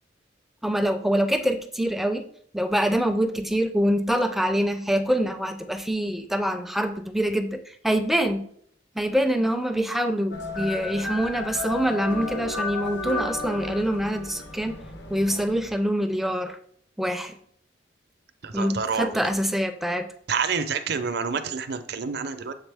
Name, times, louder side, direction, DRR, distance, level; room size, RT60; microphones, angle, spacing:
voice 1, 0.6-2.2 2.5-8.4 9.0-14.8 15.1-16.6 17.0-17.3 18.5-20.1, equal, ahead, 7 dB, 0.4 m, -25 dB
sound 1, 10.3-15.7, left 2 dB, 70° left, 0.9 m, -33 dB
voice 2, 18.4-19.1 20.3-22.5, right 5 dB, 60° right, 10 dB, 0.5 m, -28 dB
7.3 x 3.8 x 3.4 m, 0.64 s
head